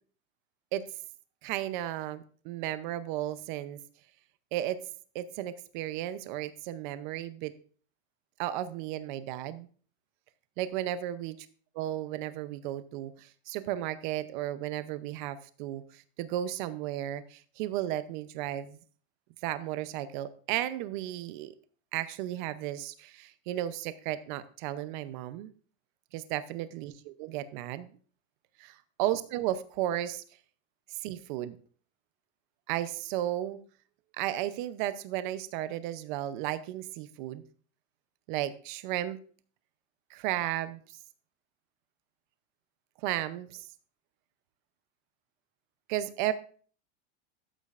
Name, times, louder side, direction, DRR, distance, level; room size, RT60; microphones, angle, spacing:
voice 1, 1.4-3.8 4.5-4.8 5.1-7.5 8.4-9.7 10.6-11.4 11.7-18.8 19.4-21.5 21.9-25.5 26.1-27.9 29.0-30.2 30.9-31.6 32.7-33.6 34.2-37.4 38.3-39.2 40.1-41.0 43.0-43.7 45.9-46.3, right 13 dB, 45° right, 13 dB, 0.7 m, -34 dB
12.5 x 8.5 x 2.5 m, 0.43 s
supercardioid pair, 175°, 34 cm